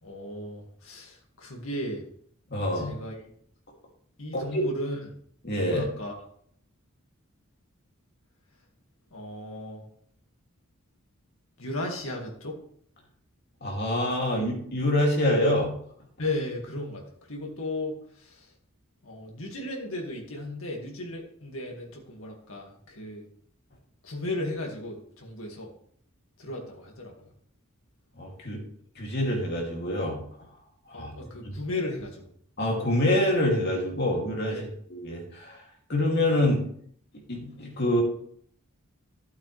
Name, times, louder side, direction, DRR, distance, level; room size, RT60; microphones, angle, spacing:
voice 1, 0.0-2.0 2.7-3.3 4.2-5.2 5.7-6.2 9.1-9.9 11.6-12.6 16.2-18.5 19.0-23.2 24.0-25.7 26.4-27.3 30.9-32.3 34.5-34.7, left 1 dB, 65° left, 0 dB, 2.2 m, -35 dB
voice 2, 2.5-2.9 4.3-4.6 5.4-5.9 13.6-15.7 28.2-28.6 29.0-30.2 30.9-31.1 31.4-31.5 32.6-34.6 34.9-35.6 35.9-36.6 37.3-38.0, left 1 dB, 50° left, -1 dB, 2.7 m, -26 dB
12.5 x 8.2 x 3.4 m, 0.63 s
head